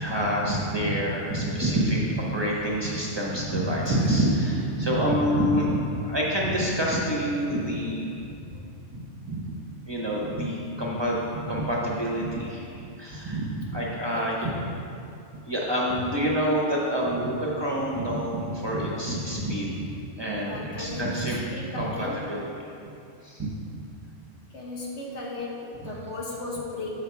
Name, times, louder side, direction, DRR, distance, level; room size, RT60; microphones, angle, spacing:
voice 1, 0.0-8.6 8.9-9.4 9.9-14.5 15.5-19.9 20.2-21.4 21.7-22.6 23.2-23.8 25.8-25.9, equal, 25° right, -4 dB, 0.9 m, -27 dB
voice 2, 20.4-22.3 24.5-26.9, left 2 dB, 70° left, -3 dB, 1.4 m, -36 dB
8.2 x 5.6 x 4.6 m, 2.6 s
omnidirectional pair, 1.3 m